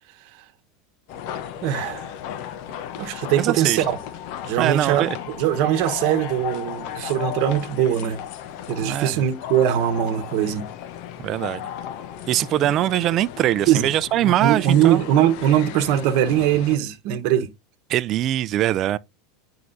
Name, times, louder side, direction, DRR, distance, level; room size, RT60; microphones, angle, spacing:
sound 1, 1.1-16.8, left 10 dB, 60° left, 0.9 m, -35 dB
voice 1, 1.6-2.1 3.0-4.0 4.4-8.2 8.7-10.7 13.7-13.9 14.2-17.5, right 11 dB, 60° right, 1.0 m, -21 dB
voice 2, 3.4-3.8 4.6-5.2 8.8-9.2 11.2-11.7 12.3-15.0 17.9-19.0, right 13 dB, 45° right, 0.5 m, -22 dB
9.6 x 4.8 x 2.6 m
supercardioid pair, 115°, 0 cm